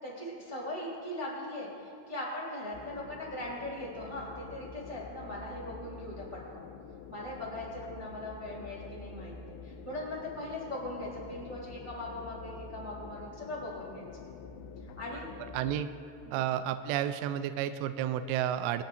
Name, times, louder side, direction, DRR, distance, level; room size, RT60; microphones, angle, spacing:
voice 1, 0.0-6.2 6.5-6.7 7.1-9.3 9.6-14.1 15.0-15.3 16.2-16.4, left 1 dB, 10° right, -5 dB, 1.8 m, -40 dB
sound 1, 2.7-15.8, left 5 dB, 85° left, 2.7 m, -47 dB
voice 2, 15.5-15.9 16.3-18.8, right 11 dB, 85° right, 10 dB, 2.7 m, -31 dB
23.5 x 10.0 x 2.6 m, 2.6 s
omnidirectional pair, 5.2 m